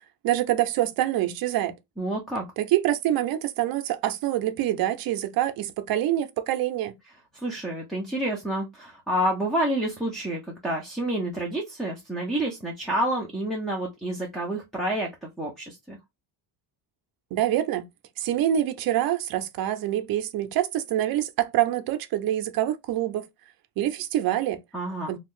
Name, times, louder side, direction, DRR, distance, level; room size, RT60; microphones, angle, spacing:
voice 1, 0.2-1.8 2.6-6.9 17.3-17.9 18.2-23.3 23.8-24.6 25.1-25.2, right 12 dB, 55° right, 0.6 m, -25 dB
voice 2, 2.0-2.4 7.3-16.0 24.7-25.1, right 1 dB, ahead, 0.5 m, -29 dB
2.6 x 2.4 x 3.6 m
cardioid pair, 140°, 42 cm